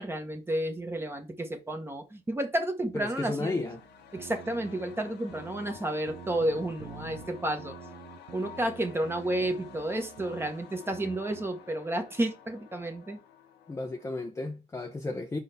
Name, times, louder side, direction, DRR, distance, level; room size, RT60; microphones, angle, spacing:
voice 1, 0.0-3.6 4.1-7.8 8.3-13.2, right 1 dB, 15° right, 1.1 m, -31 dB
voice 2, 2.9-3.8 13.7-15.4, left 2 dB, 15° left, 0.7 m, -33 dB
sound 1, 3.3-14.3, left 8 dB, 85° left, 1.4 m, -51 dB
sound 2, 3.6-5.8 6.1-10.5 10.9-11.5, right 9 dB, 85° right, 1.1 m, -47 dB
5.5 x 4.0 x 5.2 m
cardioid pair, 160°, 17 cm